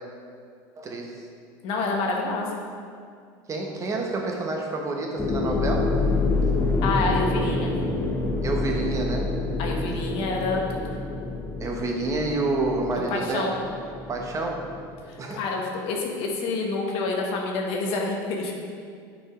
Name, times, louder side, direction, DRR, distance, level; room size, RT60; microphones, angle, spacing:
voice 1, 0.8-1.2 3.5-5.9 8.4-9.3 11.6-13.5 14.1-14.6 15.2-15.4, right 2 dB, 30° right, 1 dB, 1.3 m, -28 dB
voice 2, 1.6-2.6 6.8-7.7 9.6-10.8 13.1-13.5 15.1-18.5, left 3 dB, 60° left, 0 dB, 1.4 m, -28 dB
sound 1, 5.2-14.9, left 2 dB, 25° left, 1.1 m, -27 dB
9.2 x 5.5 x 3.8 m, 2.2 s
supercardioid pair, 110°, 11 cm